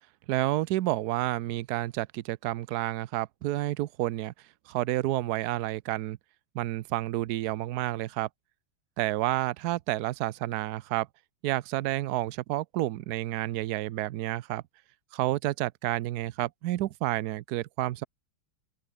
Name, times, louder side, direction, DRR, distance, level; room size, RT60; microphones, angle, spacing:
voice 1, 0.3-4.3 4.7-6.2 6.5-8.3 9.0-11.1 11.4-14.6 15.1-18.0, right 16 dB, 80° right, 0.8 m, -30 dB
open air
omnidirectional pair, 2.4 m